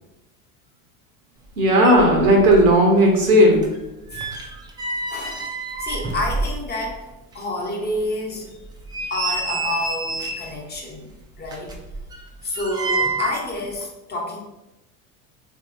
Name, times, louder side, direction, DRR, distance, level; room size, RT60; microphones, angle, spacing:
sound 1, 1.5-1.6 1.7-2.7 3.0-7.0 7.3-7.4 8.0-8.1 8.6-10.6 11.4-13.4 13.7-13.9, right 3 dB, 10° right, 0.3 m, -29 dB
voice 1, 1.6-3.6, equal, 85° right, 1 dB, 0.9 m, -14 dB
voice 2, 5.1-5.5 5.8-7.1 7.3-8.6 9.1-11.1 11.4-11.8 12.4-14.4, left 1 dB, 25° left, 0 dB, 0.9 m, -28 dB
3.8 x 2.7 x 2.5 m, 0.97 s
hypercardioid pair, 75°, 42 cm